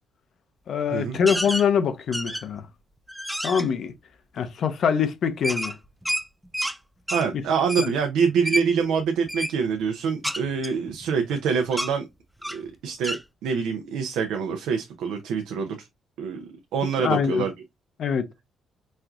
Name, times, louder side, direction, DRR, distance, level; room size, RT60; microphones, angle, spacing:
voice 1, 0.7-2.7 3.4-3.9 4.3-5.7 7.8-7.9 17.0-17.5 18.0-18.3, left 7 dB, 60° left, 0.5 m, -24 dB
sound 1, 1.3-1.7 2.1-2.6 3.1-3.7 5.4-6.8 7.1-7.3 7.7-7.9 8.5-8.7 9.3-9.5 10.2-11.4 11.7-11.9 12.4-12.7 13.0-13.2, equal, ahead, 0.4 m, -29 dB
voice 2, 7.1-12.1 12.5-15.9 16.2-17.5, right 6 dB, 90° right, 0.5 m, -26 dB
4.3 x 2.4 x 2.3 m
cardioid pair, 90°, 0 cm